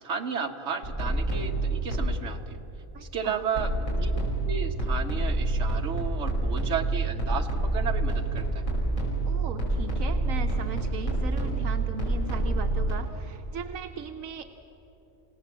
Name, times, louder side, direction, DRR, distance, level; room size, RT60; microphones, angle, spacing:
voice 1, 0.0-2.6 3.1-3.7 4.0-8.6, right 6 dB, 60° right, 4 dB, 1.6 m, -33 dB
sound 1, 0.8-2.2 3.5-12.9, right 2 dB, 85° left, 6.1 m, -27 dB
voice 2, 2.9-3.4 9.3-14.4, right 6 dB, 85° right, 6 dB, 1.3 m, -38 dB
28.5 x 17.5 x 7.4 m, 3.0 s
omnidirectional pair, 1.4 m